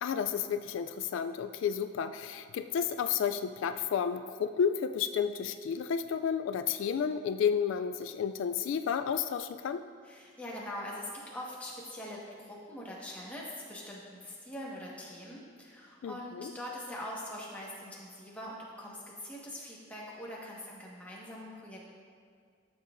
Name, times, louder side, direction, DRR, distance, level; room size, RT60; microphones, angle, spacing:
voice 1, 0.0-9.8 16.0-16.5, left 7 dB, 80° left, 9 dB, 0.3 m, -31 dB
voice 2, 10.0-21.9, left 1 dB, 10° left, -5 dB, 1.3 m, -43 dB
13.0 x 7.0 x 2.5 m, 2.1 s
head